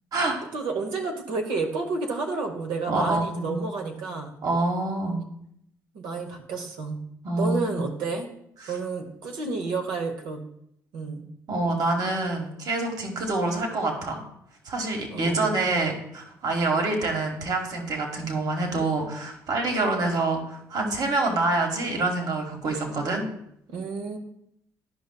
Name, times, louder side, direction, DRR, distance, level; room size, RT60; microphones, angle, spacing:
voice 1, 0.5-4.3 5.9-7.0 7.4-8.3 8.7-10.4 10.9-11.2 15.1-15.5 23.7-24.2, right 4 dB, 85° right, 3 dB, 0.9 m, -30 dB
voice 2, 2.9-3.6 4.4-5.2 7.2-7.8 8.6-8.7 11.5-14.2 14.6-23.2, right 2 dB, 60° right, 2 dB, 1.5 m, -26 dB
11.0 x 5.3 x 2.3 m, 0.73 s
supercardioid pair, 65°, 8 cm